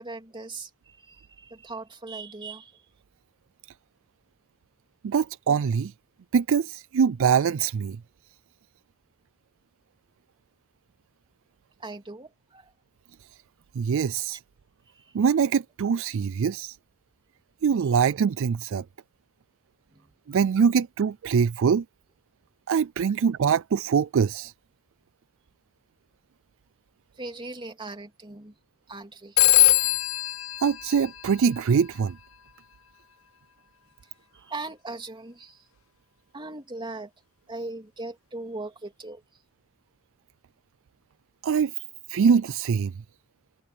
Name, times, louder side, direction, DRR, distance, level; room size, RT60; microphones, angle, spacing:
voice 1, 0.0-2.8 11.8-12.7 14.9-15.1 19.9-20.1 27.2-28.5 28.9-29.4 34.3-35.6 36.3-37.1 37.5-39.2, right 2 dB, 25° right, 3.2 m, -39 dB
voice 2, 5.0-5.9 6.3-8.0 13.7-14.4 15.1-16.8 17.6-18.8 20.3-21.8 22.7-24.5 30.6-32.2 41.4-41.7 42.1-42.9, right 6 dB, 65° right, 0.4 m, -23 dB
Telephone, 29.4-31.9, left 15 dB, 70° left, 0.9 m, -22 dB
head